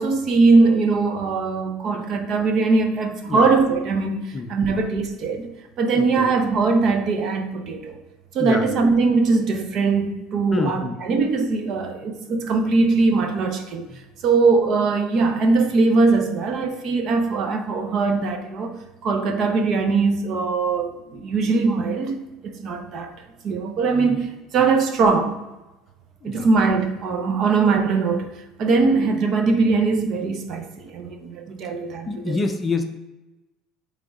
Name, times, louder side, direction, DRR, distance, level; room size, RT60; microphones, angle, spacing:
voice 1, 0.0-7.9 8.3-13.9 14.2-18.7 19.0-23.1 23.4-25.3 26.2-28.3 28.6-32.4, right 4 dB, 50° right, 0.9 m, -21 dB
voice 2, 4.3-4.8 5.9-6.3 8.4-8.8 10.5-11.0 13.9-14.0 24.1-24.2 24.6-24.7 26.2-26.5 32.0-32.8, left 3 dB, 25° left, 0.6 m, -27 dB
8.6 x 3.7 x 3.6 m
supercardioid pair, 120°, 0 cm